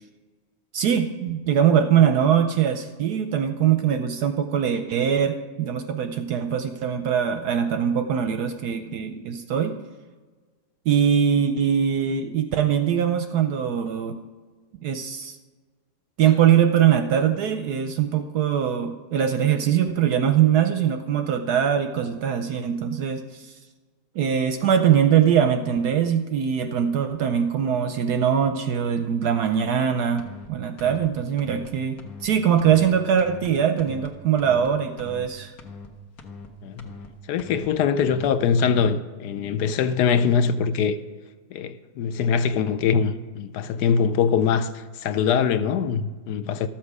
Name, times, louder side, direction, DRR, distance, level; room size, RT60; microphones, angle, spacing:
voice 1, 0.7-9.8 10.9-14.2 14.8-15.4 16.2-23.5 24.1-35.5, right 8 dB, 70° right, 1.0 m, -22 dB
sound 1, 30.2-30.5 30.8-31.1 31.4-31.7 32.0-32.3 32.6-32.9 33.2-33.5 33.8-34.1 34.4-34.7 35.0-35.3 35.6-35.9 36.2-36.5 36.8-37.1 37.4-37.7 38.0-38.3 38.6-38.9, left 4 dB, 55° left, 1.4 m, -41 dB
voice 2, 37.3-41.0 41.5-46.7, left 6 dB, 70° left, 1.0 m, -23 dB
13.5 x 7.4 x 4.8 m
omnidirectional pair, 2.1 m